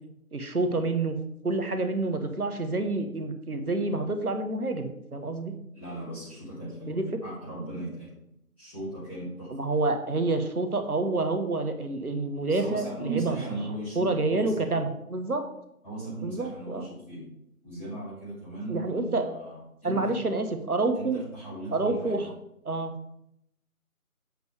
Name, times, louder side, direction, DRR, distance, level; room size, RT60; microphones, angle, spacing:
voice 1, 0.3-1.2 1.4-5.5 6.9-7.0 9.5-13.4 13.9-15.4 16.2-16.9 18.7-19.3 19.8-21.2 21.7-22.3 22.6-22.9, right 2 dB, 75° right, 7 dB, 1.3 m, -28 dB
voice 2, 5.7-8.1 8.6-9.5 12.5-14.5 15.8-17.3 17.6-20.3 20.9-22.3, right 2 dB, 10° left, -12 dB, 1.9 m, -37 dB
7.9 x 7.0 x 3.3 m, 0.78 s
figure-of-eight pair, 160°, 44 cm